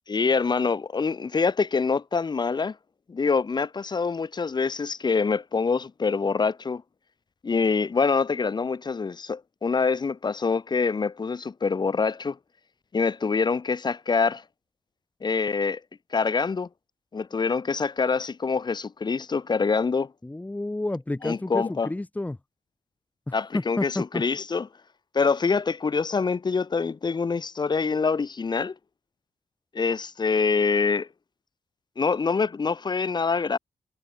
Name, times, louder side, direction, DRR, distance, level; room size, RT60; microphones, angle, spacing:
voice 1, 0.1-2.8 3.1-6.8 7.4-12.4 12.9-14.4 15.2-15.8 16.1-16.7 17.1-20.1 21.2-21.9 23.3-24.7 25.1-28.7 29.7-31.1 32.0-33.6, left 5 dB, 35° left, 4.3 m, -25 dB
voice 2, 20.2-22.4 23.3-24.2, left 2 dB, 10° left, 3.0 m, -30 dB
wide cardioid pair, 135°, 13 cm